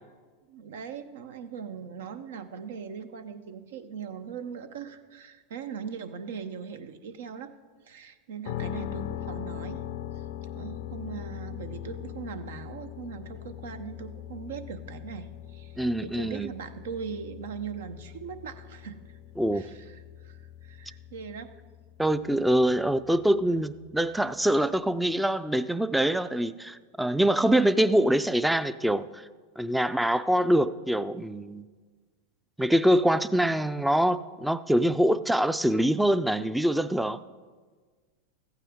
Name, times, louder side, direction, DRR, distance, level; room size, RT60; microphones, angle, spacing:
voice 1, 0.5-7.5 7.8-9.8 10.1-10.2 10.5-19.2 19.5-21.5, right 6 dB, 75° right, 0.7 m, -40 dB
sound 1, 8.5-24.3, left 11 dB, 65° left, 0.4 m, -41 dB
voice 2, 15.8-16.5 19.4-19.7 22.0-29.2 29.6-31.6 32.6-37.2, right 1 dB, 5° right, 0.4 m, -24 dB
14.5 x 9.0 x 3.6 m
hypercardioid pair, 100°, 0 cm